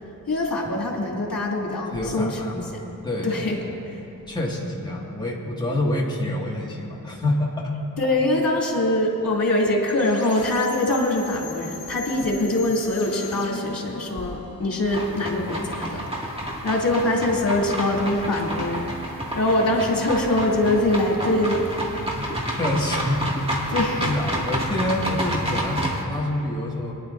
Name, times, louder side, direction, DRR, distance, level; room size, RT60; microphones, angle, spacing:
voice 1, 0.3-2.4 3.2-3.6 8.0-16.0 16.4-21.7 23.7-24.1, left 1 dB, 60° left, -3 dB, 2.8 m, -23 dB
voice 2, 1.9-2.7 3.0-3.4 4.3-7.7 22.1-23.7 24.0-26.9, left 1 dB, 10° left, -4 dB, 2.0 m, -27 dB
sound 1, 9.9-15.7, left 5 dB, 40° left, 1.0 m, -40 dB
sound 2, 14.9-26.0, right 1 dB, 15° right, 2.0 m, -29 dB
23.0 x 11.0 x 2.6 m, 2.8 s
wide cardioid pair, 70°, 38 cm